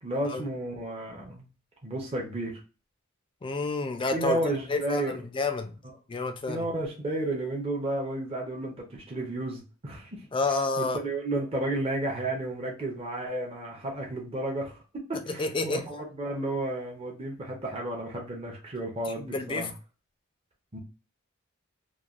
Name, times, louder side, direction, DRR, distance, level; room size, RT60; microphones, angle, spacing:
voice 1, 0.0-1.5 1.8-2.6 4.1-5.2 6.4-10.3 10.8-14.8 15.1-19.7 20.7-20.8, right 1 dB, 30° right, 0.6 m, -32 dB
voice 2, 3.4-4.4 4.7-5.7 6.1-6.7 10.3-11.0 15.3-15.9 19.2-19.7, left 3 dB, 25° left, 0.4 m, -29 dB
3.1 x 2.2 x 2.4 m
head